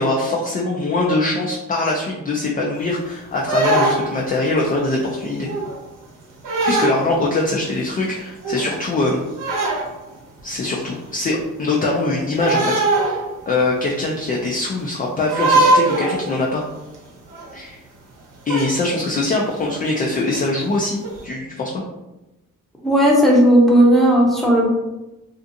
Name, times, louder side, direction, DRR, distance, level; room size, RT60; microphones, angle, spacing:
voice 1, 0.0-5.5 6.5-9.2 10.4-12.7 13.0-16.6 17.5-17.8 18.5-21.8, left 2 dB, 25° left, -2 dB, 0.4 m, -22 dB
sound 1, 3.5-4.3 4.8-5.1 5.4-5.8 6.4-7.0 7.6-7.7 8.0-8.1 8.4-8.7 9.4-9.9 10.6-10.7 12.4-13.4 13.7-13.8 15.3-16.4 16.9-17.0 17.3-17.5 18.5-18.7 19.6-19.7 20.3-20.4 21.0-21.2, right 2 dB, 65° right, 0.8 m, -20 dB
voice 2, 22.8-24.7, equal, ahead, -3 dB, 0.7 m, -14 dB
2.5 x 2.4 x 2.6 m, 1.0 s
cardioid pair, 95°, 33 cm